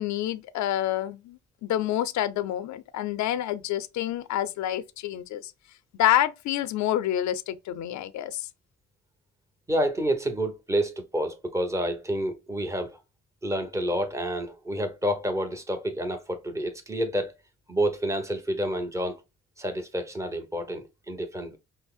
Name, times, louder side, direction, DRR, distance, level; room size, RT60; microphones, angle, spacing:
voice 1, 0.0-5.5 6.0-8.5, left 12 dB, 70° left, 0.5 m, -28 dB
voice 2, 9.7-13.0 13.4-17.3 17.7-19.2 19.6-21.6, right 1 dB, 10° right, 0.9 m, -29 dB
5.4 x 2.1 x 2.4 m
cardioid pair, 90°, 30 cm